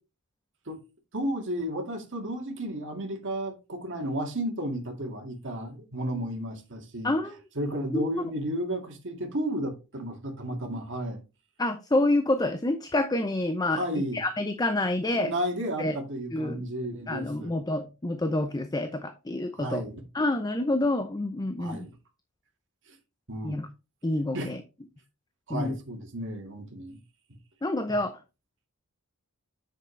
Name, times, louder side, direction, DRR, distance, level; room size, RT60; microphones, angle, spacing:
voice 1, 1.1-7.2 7.6-11.2 13.7-14.2 15.1-17.5 19.5-20.0 21.6-21.9 22.9-23.0 23.3-23.6 24.3-24.5 25.5-27.0 27.9-28.0, equal, 55° right, 2.0 m, -33 dB
voice 2, 7.0-7.4 7.9-8.1 11.6-13.8 14.1-15.3 15.8-16.0 16.3-16.6 17.1-19.8 20.1-21.9 23.4-23.7 24.0-24.6 25.5-25.8 27.6-28.2, left 2 dB, 15° left, 0.6 m, -27 dB
7.7 x 6.6 x 3.2 m
head